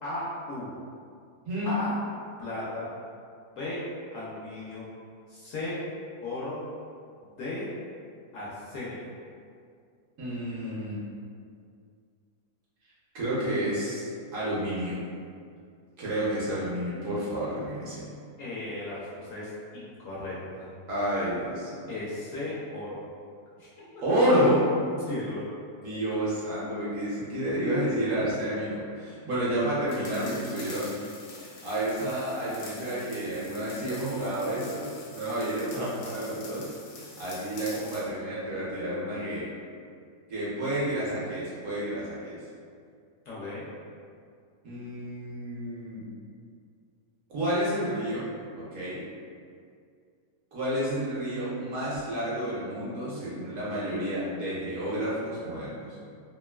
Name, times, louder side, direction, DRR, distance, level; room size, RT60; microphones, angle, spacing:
voice 1, 0.0-0.7 1.6-2.0 2.4-2.9 3.5-3.8 4.1-4.9 5.3-5.8 6.2-6.6 7.4-7.7 8.3-9.0 18.4-20.7 21.9-23.0 23.6-23.7 25.1-25.5 43.3-43.7, left 2 dB, 65° left, -8 dB, 0.8 m, -36 dB
voice 2, 1.5-1.8 10.2-11.0 13.1-15.0 16.0-18.0 20.9-21.9 24.0-24.7 25.8-30.9 31.4-36.7 37.2-39.5 40.3-42.4 44.6-46.0 47.3-48.3 48.5-49.0 50.5-55.9, equal, 60° right, -8 dB, 1.0 m, -30 dB
sound 1, 29.9-38.1, left 3 dB, 90° left, 1.2 m, -46 dB
3.0 x 2.5 x 2.2 m, 2.3 s
omnidirectional pair, 1.7 m